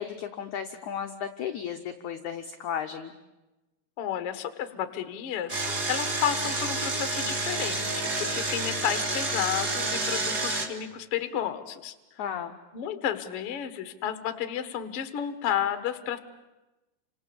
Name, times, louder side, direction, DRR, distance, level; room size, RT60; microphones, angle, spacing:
voice 1, 0.0-3.1 12.2-12.6, left 8 dB, 75° left, 5 dB, 1.7 m, -34 dB
voice 2, 4.0-5.6 5.9-11.9 12.7-16.2, left 10 dB, 60° left, 10 dB, 1.6 m, -32 dB
Engine, 5.5-10.7, right 2 dB, 30° right, 2.0 m, -29 dB
30.0 x 26.0 x 7.1 m, 1.1 s
omnidirectional pair, 4.8 m